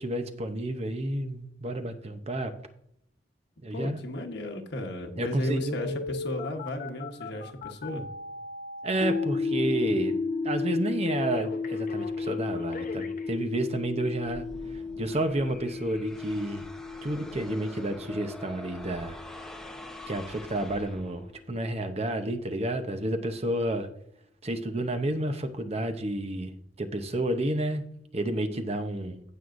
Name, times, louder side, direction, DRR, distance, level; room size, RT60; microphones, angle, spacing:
voice 1, 0.0-2.5 3.6-4.0 5.2-6.0 8.8-10.1 10.4-16.6 17.0-19.2 20.1-23.9 24.4-27.8 28.1-29.2, right 1 dB, 35° right, 8 dB, 0.8 m, -30 dB
voice 2, 3.7-8.0, left 1 dB, 65° left, 4 dB, 1.2 m, -34 dB
Telephone, 5.4-13.4 14.0-14.1, left 1 dB, 45° left, 0.8 m, -38 dB
sound 1, 9.0-21.1, left 4 dB, 85° left, 1.3 m, -34 dB
sound 2, 14.2-21.4, left 1 dB, 5° left, 0.8 m, -45 dB
16.5 x 6.2 x 2.6 m, 0.73 s
head